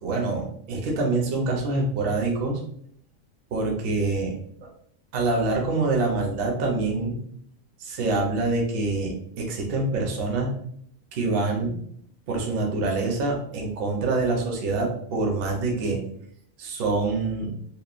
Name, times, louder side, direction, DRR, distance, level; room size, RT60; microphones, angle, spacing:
voice 1, 0.0-2.6 3.5-4.3 5.1-7.2 7.8-10.6 11.1-11.8 12.3-16.0 16.6-17.6, right 3 dB, 60° right, 0 dB, 0.7 m, -25 dB
3.0 x 2.1 x 2.3 m, 0.66 s
omnidirectional pair, 1.4 m